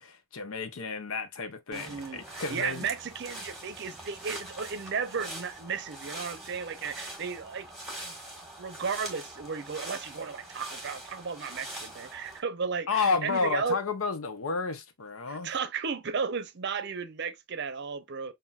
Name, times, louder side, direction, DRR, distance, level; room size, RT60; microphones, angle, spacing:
voice 1, 0.0-2.9 12.9-15.5, left 4 dB, 85° left, 0.7 m, -31 dB
sound 1, 1.7-12.4, right 1 dB, ahead, 1.3 m, -43 dB
voice 2, 1.7-8.1 8.6-13.8 15.3-18.3, right 5 dB, 55° right, 0.6 m, -34 dB
5.6 x 2.6 x 2.3 m
head